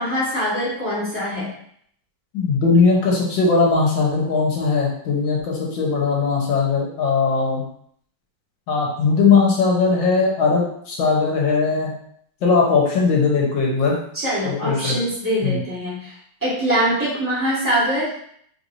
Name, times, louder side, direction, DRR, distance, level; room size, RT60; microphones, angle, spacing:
voice 1, 0.0-1.5 14.1-18.1, equal, 10° right, -9 dB, 1.5 m, -23 dB
voice 2, 2.3-7.6 8.7-11.9 12.4-14.0 14.4-15.0 15.4-15.6, left 4 dB, 80° left, -2 dB, 1.8 m, -19 dB
4.3 x 3.3 x 2.6 m, 0.66 s
omnidirectional pair, 2.1 m